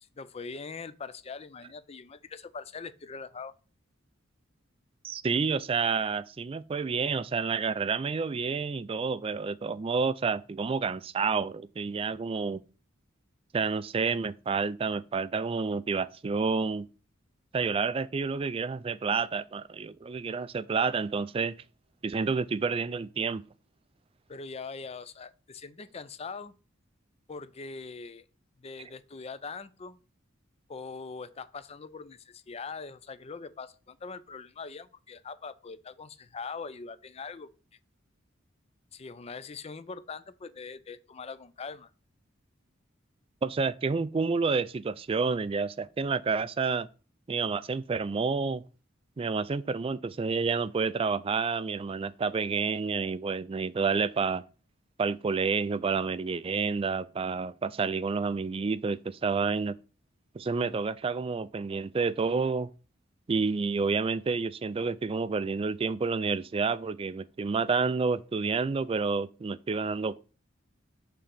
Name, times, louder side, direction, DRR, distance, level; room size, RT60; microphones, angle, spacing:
voice 1, 0.2-3.5 24.3-26.5 27.3-28.3 28.6-30.0 30.7-37.5 38.9-41.9, left 4 dB, 30° left, 0.5 m, -42 dB
voice 2, 5.0-12.6 13.5-16.9 17.5-21.6 22.0-23.4 43.4-46.9 47.3-48.6 49.2-54.4 55.0-59.7 60.3-62.7 63.3-70.2, right 4 dB, 30° right, 0.3 m, -29 dB
7.1 x 3.7 x 5.9 m
head